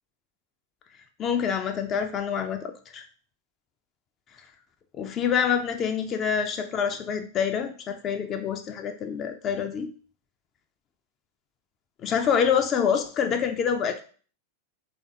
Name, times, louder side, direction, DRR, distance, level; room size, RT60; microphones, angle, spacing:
voice 1, 1.2-3.0 5.0-9.9 12.0-14.0, left 7 dB, 30° left, 6 dB, 0.3 m, -26 dB
3.2 x 2.4 x 2.6 m, 0.42 s
figure-of-eight pair, 90°, 0 cm